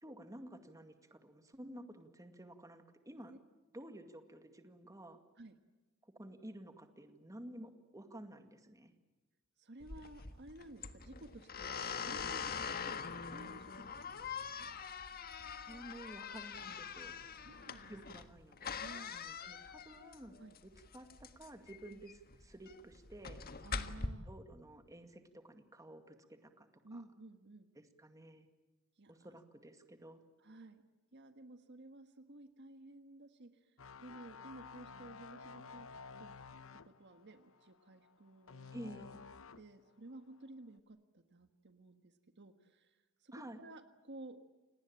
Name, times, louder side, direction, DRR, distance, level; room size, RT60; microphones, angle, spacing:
voice 1, 0.0-3.3 3.7-5.2 6.2-9.0 15.7-17.2 17.9-18.8 19.1-23.4 24.3-27.0 27.8-28.5 29.1-30.2 38.7-39.2 43.3-43.6, right 1 dB, 15° right, 7 dB, 2.1 m, -52 dB
voice 2, 9.6-14.7 17.3-17.9 18.7-19.2 20.4-20.6 21.9-22.0 23.6-24.3 26.8-27.7 29.0-29.4 30.4-30.8 31.1-33.7 34.0-35.9 36.2-36.3 36.8-38.7 39.6-44.5, right 2 dB, 55° right, 8 dB, 1.5 m, -54 dB
sound 1, 9.8-24.1, left 5 dB, 45° left, 1.5 m, -44 dB
sound 2, 33.8-39.8 40.1-40.4, left 5 dB, 70° left, 1.0 m, -52 dB
29.5 x 19.0 x 8.9 m, 1.2 s
head